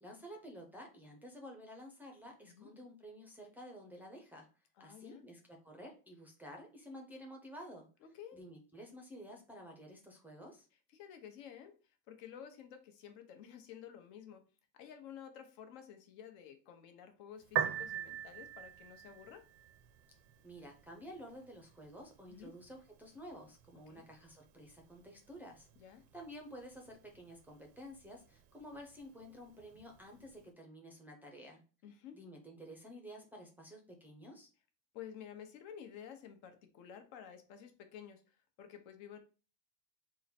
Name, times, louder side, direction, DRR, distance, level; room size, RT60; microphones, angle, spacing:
voice 1, 0.0-4.5 4.8-7.9 8.3-10.7 20.4-25.7 26.1-31.6 32.1-34.5, equal, 5° right, 1 dB, 0.4 m, -51 dB
voice 2, 4.8-5.3 8.0-8.4 10.9-14.4 14.7-19.4 22.3-22.6 23.9-24.0 25.8-26.1 31.8-32.2 34.9-39.2, left 9 dB, 80° left, 6 dB, 0.9 m, -52 dB
Piano, 17.4-30.4, right 10 dB, 90° right, 0.7 m, -45 dB
3.7 x 2.1 x 4.2 m, 0.36 s
cardioid pair, 150°, 38 cm